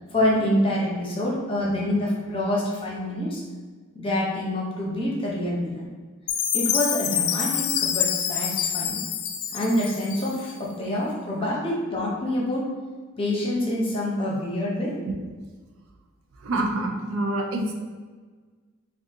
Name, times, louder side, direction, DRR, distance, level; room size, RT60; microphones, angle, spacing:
voice 1, 0.1-3.4 3.9-5.9 6.5-9.0 9.5-12.7 13.2-15.0, left 1 dB, 25° left, -4 dB, 0.7 m, -26 dB
Chime, 6.3-10.5, left 9 dB, 80° left, 0.3 m, -26 dB
voice 2, 16.4-17.7, right 2 dB, 65° right, 2 dB, 0.4 m, -27 dB
3.6 x 2.4 x 2.7 m, 1.4 s
head